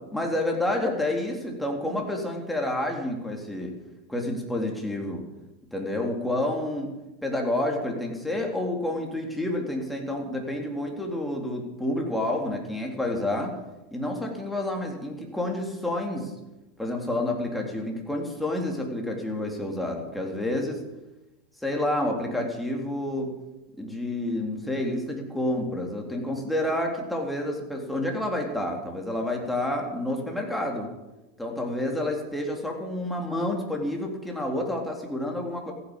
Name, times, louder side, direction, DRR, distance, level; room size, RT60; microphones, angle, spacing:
voice 1, 0.1-3.7 4.1-5.2 5.7-6.9 7.2-13.6 13.9-16.3 16.8-20.8 21.6-23.3 23.8-30.9 31.4-35.7, left 1 dB, 5° left, 0 dB, 3.7 m, -29 dB
15.0 x 9.9 x 7.3 m, 1.0 s
hypercardioid pair, 90°, 0 cm